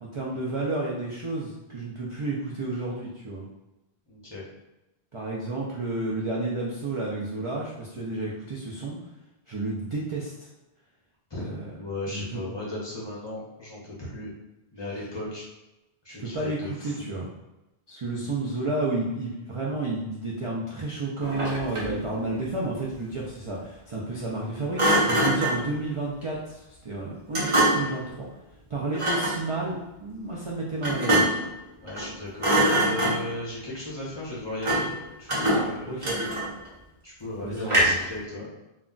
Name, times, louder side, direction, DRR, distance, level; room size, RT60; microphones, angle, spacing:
voice 1, 0.0-3.5 5.1-9.0 9.5-10.5 11.4-11.7 12.1-12.4 14.9-15.1 16.2-17.3 17.9-28.3 28.7-31.4 35.5-36.2 37.4-38.0, right 2 dB, 55° right, -5 dB, 0.3 m, -31 dB
voice 2, 4.1-4.4 11.3-14.3 14.7-15.5 16.0-16.9 18.2-18.3 31.8-34.9 35.2-36.3 37.0-38.5, left 1 dB, 30° left, -7 dB, 0.7 m, -36 dB
Thump thud, 21.2-22.0 24.8-25.7 27.3-28.0 28.9-29.4 30.8-31.5 31.9-32.1 32.4-33.4 34.6-35.0 35.3-36.7 37.7-38.1, right 1 dB, 35° right, 0.7 m, -24 dB
2.3 x 2.2 x 3.7 m, 0.97 s
omnidirectional pair, 1.1 m